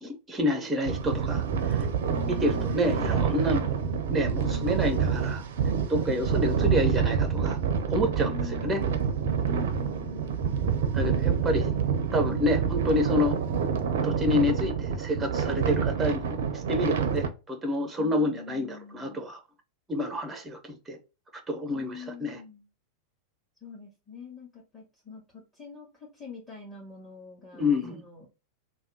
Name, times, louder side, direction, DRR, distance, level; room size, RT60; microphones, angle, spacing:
voice 1, 0.0-1.9 2.3-3.7 4.1-5.4 5.9-7.6 7.9-8.3 8.6-8.8 10.9-11.7 12.1-13.4 14.0-19.4 19.9-21.0 21.5-22.4 27.5-28.0, left 1 dB, 15° right, 0.7 m, -28 dB
sound 1, 0.8-17.3, right 7 dB, 60° right, 0.5 m, -27 dB
voice 2, 2.1-3.3 4.4-5.3 8.2-8.9 9.5-10.4 18.0-19.3 21.7-22.7 23.6-28.3, left 6 dB, 20° left, 1.7 m, -43 dB
3.4 x 2.2 x 2.7 m
figure-of-eight pair, 90°, 0 cm